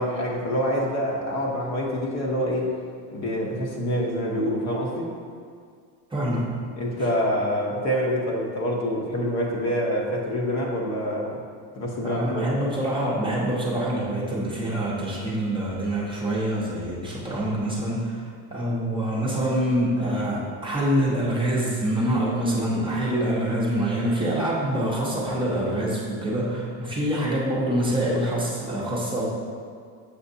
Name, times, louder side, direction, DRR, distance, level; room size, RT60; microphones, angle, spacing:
voice 1, 0.0-2.7 3.1-5.1 6.8-11.4 11.7-12.5, equal, 45° left, -1 dB, 1.0 m, -26 dB
voice 2, 6.1-6.6 12.0-29.3, right 1 dB, 15° right, -5 dB, 0.8 m, -25 dB
6.9 x 6.3 x 2.7 m, 2.1 s
cardioid pair, 150°, 37 cm